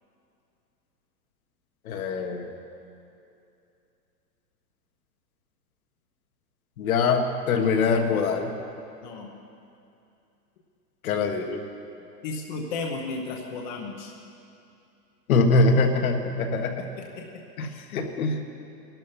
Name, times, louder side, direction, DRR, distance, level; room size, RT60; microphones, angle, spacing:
voice 1, 1.9-2.5 6.8-8.5 11.0-11.6 15.3-16.8 17.6-18.3, left 3 dB, 55° left, 5 dB, 1.7 m, -23 dB
voice 2, 9.0-9.3 12.2-14.1 16.8-17.8, left 3 dB, 30° left, 1 dB, 0.9 m, -35 dB
20.5 x 12.5 x 5.8 m, 2.7 s
supercardioid pair, 170°, 49 cm